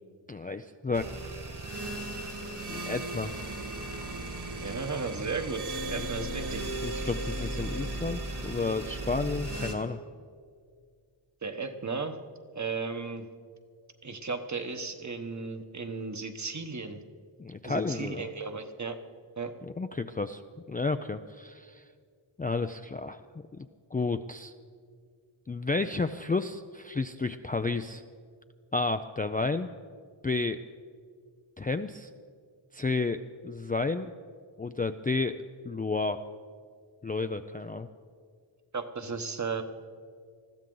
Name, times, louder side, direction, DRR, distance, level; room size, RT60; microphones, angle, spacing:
voice 1, 0.3-1.1 2.7-3.3 6.0-6.3 6.8-10.0 17.4-18.3 19.6-20.4 20.7-21.8 22.4-23.2 23.5-23.7 23.9-24.5 25.5-28.0 28.7-29.7 30.2-30.6 31.6-32.1 32.7-34.1 34.6-35.4 35.6-36.2 37.0-37.9, left 3 dB, 20° left, 7 dB, 0.4 m, -31 dB
sound 1, 0.9-9.7, right 2 dB, 55° right, 2.1 m, -36 dB
voice 2, 4.5-6.6 11.4-12.2 12.5-13.3 14.0-17.0 17.6-19.0 19.4-19.5 38.7-39.6, right 4 dB, 35° right, 7 dB, 1.1 m, -35 dB
20.5 x 14.5 x 3.9 m, 2.1 s
wide cardioid pair, 70°, 48 cm